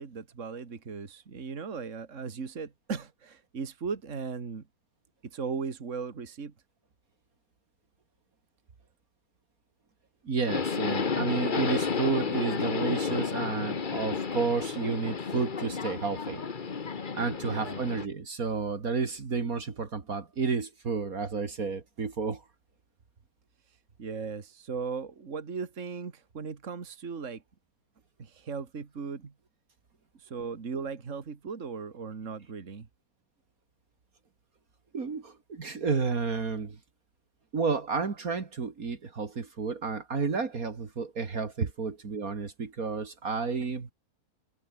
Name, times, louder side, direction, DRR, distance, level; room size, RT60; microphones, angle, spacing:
voice 1, 0.0-4.7 5.3-6.5 17.4-17.8 24.0-27.4 28.2-29.3 30.1-32.9, right 5 dB, 55° right, 2.3 m, -37 dB
voice 2, 10.2-16.4 17.1-22.4 34.9-36.8 37.5-43.9, right 4 dB, 70° right, 2.7 m, -31 dB
Subway metro underground, 10.5-18.1, left 5 dB, 35° left, 1.3 m, -32 dB
omnidirectional pair, 1.5 m